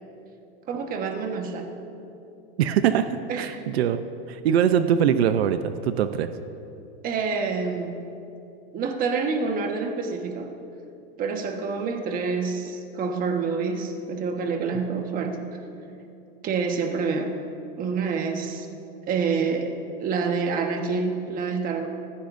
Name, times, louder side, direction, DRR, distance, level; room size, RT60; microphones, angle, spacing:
voice 1, 0.7-1.8 3.3-3.6 7.0-8.1 8.7-10.5 11.2-15.5 16.4-17.4 17.8-18.7 19.1-21.9, right 5 dB, 30° right, 4 dB, 1.4 m, -27 dB
voice 2, 2.6-6.3, right 9 dB, 85° right, 10 dB, 0.7 m, -23 dB
24.0 x 15.5 x 2.7 m, 2.8 s
supercardioid pair, 145°, 31 cm